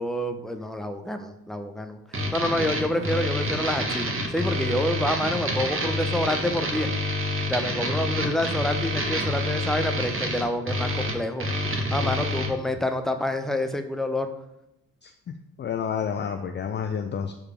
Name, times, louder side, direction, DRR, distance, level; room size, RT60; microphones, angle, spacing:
voice 1, 0.0-6.9 7.5-11.5 11.9-14.3, left 1 dB, ahead, 6 dB, 1.0 m, -28 dB
sound 1, 2.1-12.5, equal, 30° right, 1.8 m, -28 dB
voice 2, 15.0-17.3, left 7 dB, 25° left, 6 dB, 0.6 m, -30 dB
11.5 x 4.9 x 3.7 m, 0.84 s
figure-of-eight pair, 50°, 44 cm